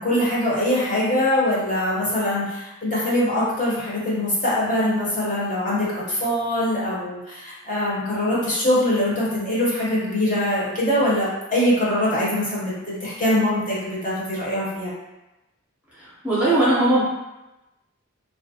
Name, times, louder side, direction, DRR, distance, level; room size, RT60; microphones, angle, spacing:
voice 1, 0.0-14.9, left 1 dB, 40° left, -7 dB, 0.7 m, -23 dB
voice 2, 16.0-17.0, right 1 dB, 5° right, -9 dB, 0.5 m, -19 dB
2.3 x 2.0 x 2.6 m, 1.0 s
head